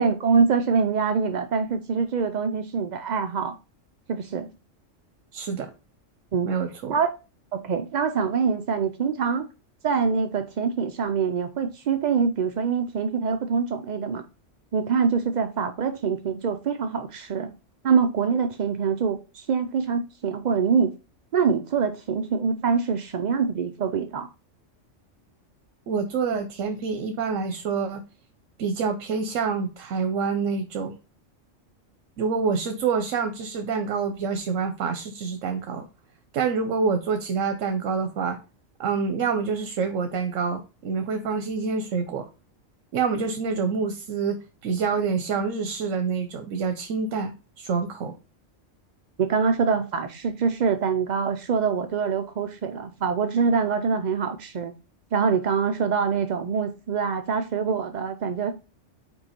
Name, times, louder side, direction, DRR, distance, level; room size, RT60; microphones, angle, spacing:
voice 1, 0.0-3.6 4.1-4.5 6.3-6.5 6.9-7.1 7.5-9.5 9.8-14.2 14.7-17.5 17.8-20.9 21.3-24.3 49.2-54.7 55.1-58.5, right 6 dB, 60° right, 0.4 m, -24 dB
voice 2, 5.3-5.7 6.4-7.0 25.9-28.0 28.6-30.9 32.2-35.8 36.3-38.4 38.8-42.3 42.9-48.1, right 5 dB, 80° right, 1.1 m, -27 dB
5.3 x 4.6 x 4.2 m
omnidirectional pair, 1.3 m